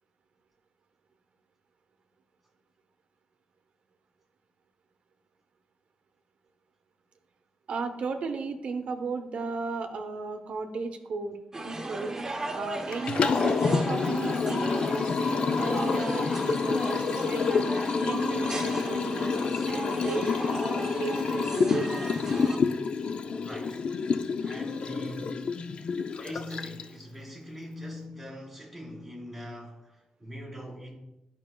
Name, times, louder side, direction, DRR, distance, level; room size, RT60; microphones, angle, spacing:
voice 1, 7.7-11.4 11.6-12.1 12.5-17.7 18.0-19.4 19.6-22.1, right 4 dB, 70° right, 0.7 m, -35 dB
sound 1, 11.5-22.6, right 2 dB, 20° right, 0.7 m, -36 dB
Liquid, 12.9-27.0, left 5 dB, 50° left, 0.3 m, -28 dB
voice 2, 23.3-23.9 24.4-25.5 26.2-31.0, equal, ahead, 1.9 m, -42 dB
11.0 x 5.4 x 2.2 m
wide cardioid pair, 155°, 2 cm